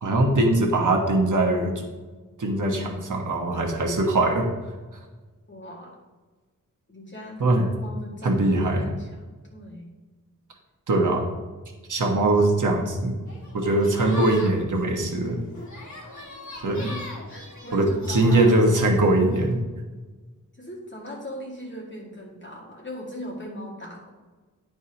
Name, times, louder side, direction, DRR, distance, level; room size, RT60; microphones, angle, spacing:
voice 1, 0.0-1.8 2.4-4.5 7.4-7.7 8.2-8.9 10.9-11.3 11.9-13.2 13.5-15.4 16.6-16.9 17.7-19.6, right 2 dB, 65° right, 1 dB, 1.2 m, -21 dB
voice 2, 5.5-5.9 6.9-9.2 9.5-9.9 16.7-17.0 17.3-18.8 20.6-24.1, equal, 35° left, -3 dB, 2.0 m, -39 dB
sound 1, 13.2-19.5, left 2 dB, 60° left, 1.9 m, -41 dB
11.0 x 4.7 x 2.9 m, 1.3 s
wide cardioid pair, 100°, 32 cm